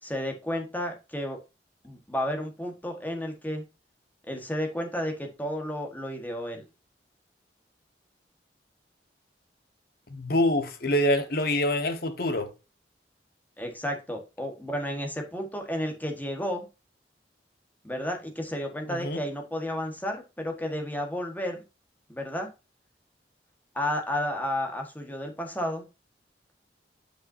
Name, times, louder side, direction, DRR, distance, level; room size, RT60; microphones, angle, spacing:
voice 1, 0.0-1.4 1.8-3.6 4.3-6.6 13.6-16.6 17.8-21.6 22.1-22.5 23.7-25.8, equal, 10° left, 1.5 m, -32 dB
voice 2, 10.1-12.5 18.9-19.2, left 1 dB, 60° left, 1.3 m, -25 dB
7.9 x 5.7 x 2.7 m
head